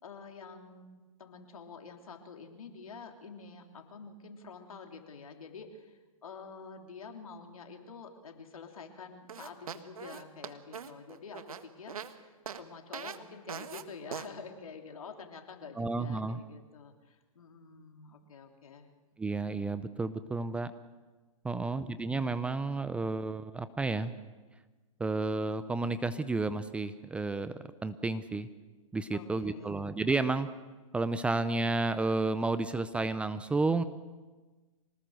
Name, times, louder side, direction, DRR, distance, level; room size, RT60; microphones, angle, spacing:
voice 1, 0.0-0.8 1.2-18.9 21.5-22.1 29.1-29.8, left 5 dB, 75° left, 4 dB, 3.2 m, -48 dB
sound 1, 9.3-12.1 12.5-12.6 12.9-13.2 13.5-13.8 14.1-14.3, right 7 dB, 80° right, 1.6 m, -41 dB
voice 2, 15.8-16.4 19.2-20.7 21.4-24.1 25.0-28.5 28.9-30.5 30.9-33.8, right 3 dB, 5° right, 13 dB, 0.6 m, -31 dB
25.5 x 19.5 x 6.5 m, 1.3 s
hypercardioid pair, 135°, 18 cm